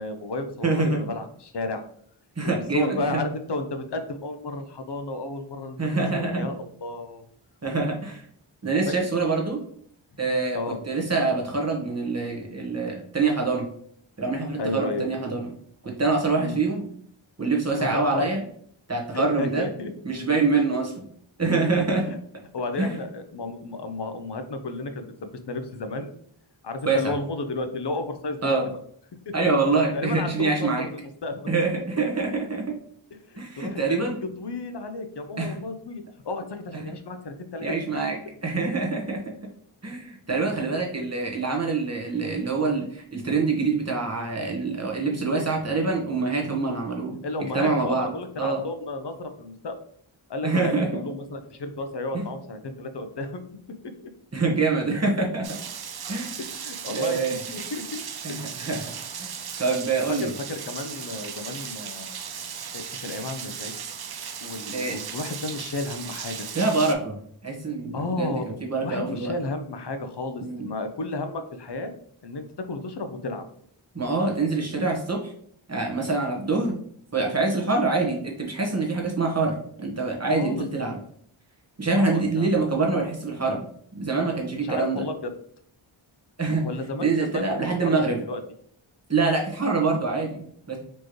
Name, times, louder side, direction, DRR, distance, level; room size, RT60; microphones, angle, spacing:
voice 1, 0.0-1.9 2.4-7.2 8.9-9.0 10.5-10.8 14.6-15.1 16.4-16.6 17.8-18.3 19.1-19.9 22.5-26.1 26.6-28.8 29.3-29.5 29.9-31.5 33.3-37.7 47.2-49.8 50.3-53.4 56.4-57.2 57.5-58.0 58.3-58.8 60.1-62.2 62.7-63.7 64.4-66.5 67.9-68.5 68.8-71.9 72.2-73.4 80.3-80.7 81.9-82.5 82.9-83.1 84.5-85.3 86.6-87.4 87.7-88.4, left 2 dB, 55° left, 8 dB, 0.7 m, -32 dB
voice 2, 0.6-1.0 2.4-3.2 5.8-6.5 7.6-8.2 8.6-9.6 10.2-10.6 10.9-13.7 14.2-15.5 15.8-16.9 17.4-18.4 18.9-19.7 20.0-20.9 21.4-22.0 22.8-22.9 26.8-27.1 28.4-28.6 29.3-30.9 31.5-32.6 33.4-34.2 35.4-35.5 37.6-38.2 38.4-39.2 39.8-47.1 47.5-48.1 48.4-48.6 50.4-51.0 52.1-52.2 54.3-55.6 56.1-56.4 56.9-57.3 58.2-58.8 59.2-59.3 59.6-60.3 64.7-65.0 66.5-67.2 67.4-69.3 70.4-70.7 73.9-75.3 75.7-76.8 77.1-81.0 81.8-83.6 83.9-85.0 86.4-86.6 87.0-88.2 89.1-90.8, right 3 dB, 30° right, 0 dB, 1.2 m, -25 dB
Rain, 55.4-66.9, right 7 dB, 50° right, 0.5 m, -37 dB
4.4 x 3.1 x 3.0 m, 0.62 s
wide cardioid pair, 45°, 50 cm